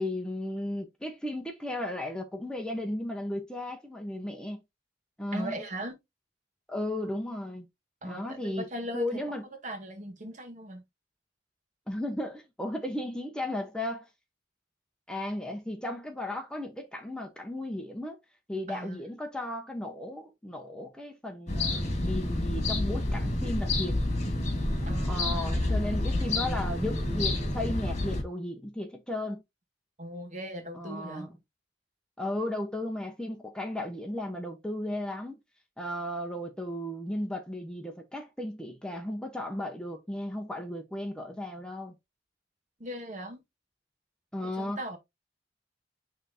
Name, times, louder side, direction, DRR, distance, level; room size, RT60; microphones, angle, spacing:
voice 1, 0.0-4.6 5.2-5.6 6.7-7.7 8.0-8.7 8.9-9.4 11.9-14.0 15.1-18.2 18.5-23.9 25.1-29.4 30.7-31.4 32.2-35.4 35.8-41.9 44.3-45.0, left 1 dB, 5° left, 1.0 m, -35 dB
voice 2, 5.3-6.0 8.0-9.2 9.6-10.8 18.7-19.0 24.8-25.8 30.0-31.3 42.8-43.4 44.4-45.0, right 1 dB, 45° right, 2.2 m, -39 dB
sound 1, 21.5-28.2, left 2 dB, 40° left, 2.6 m, -29 dB
9.8 x 3.6 x 2.7 m
head